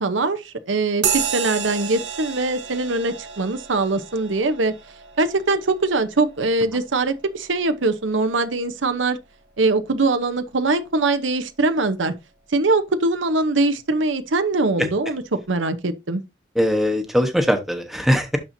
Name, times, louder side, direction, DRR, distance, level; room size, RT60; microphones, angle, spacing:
voice 1, 0.0-4.7 5.2-9.2 9.6-12.1 12.5-16.2, right 3 dB, 85° right, 0.9 m, -22 dB
sound 1, 1.0-8.9, right 8 dB, 65° right, 1.2 m, -32 dB
voice 2, 16.5-18.4, equal, ahead, 1.0 m, -20 dB
11.5 x 4.3 x 2.7 m
head